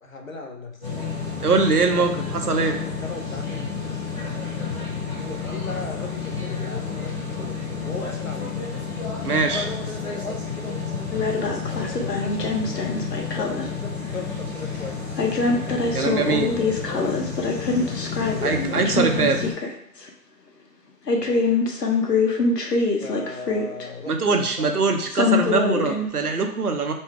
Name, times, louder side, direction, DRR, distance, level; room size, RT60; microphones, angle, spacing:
voice 1, 0.0-0.9 1.9-3.7 5.1-8.7 9.5-11.0 11.3-12.5 13.4-15.0 15.6-17.5 18.3-19.3 21.2-21.5 23.0-25.7, left 3 dB, 55° left, 3 dB, 0.8 m, -37 dB
sound 1, 0.8-19.5, left 5 dB, 20° left, 1.2 m, -31 dB
voice 2, 1.4-2.8 9.2-9.7 15.9-16.5 18.4-19.4 24.1-26.9, right 4 dB, 70° right, 4 dB, 0.8 m, -22 dB
sound 2, 11.1-13.7 15.2-19.7 20.1-20.2 21.1-23.9 25.1-26.1, left 3 dB, 80° left, 1.0 m, -24 dB
4.4 x 2.3 x 4.5 m, 0.71 s
figure-of-eight pair, 170°, 48 cm